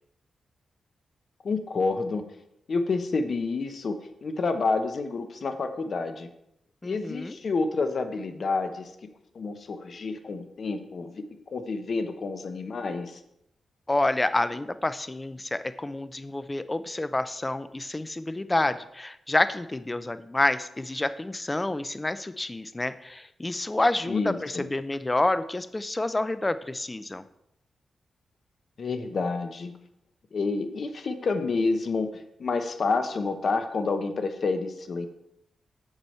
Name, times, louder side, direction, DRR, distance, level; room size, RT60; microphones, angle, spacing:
voice 1, 1.4-2.2 2.7-6.3 6.8-8.9 9.3-13.2 24.0-24.7 28.8-29.7 30.3-32.1 32.4-35.1, left 3 dB, 50° left, 8 dB, 0.8 m, -29 dB
voice 2, 6.8-7.4 13.9-27.2, left 2 dB, 15° left, 13 dB, 0.4 m, -28 dB
8.1 x 7.0 x 4.4 m, 0.80 s
wide cardioid pair, 125°, 0 cm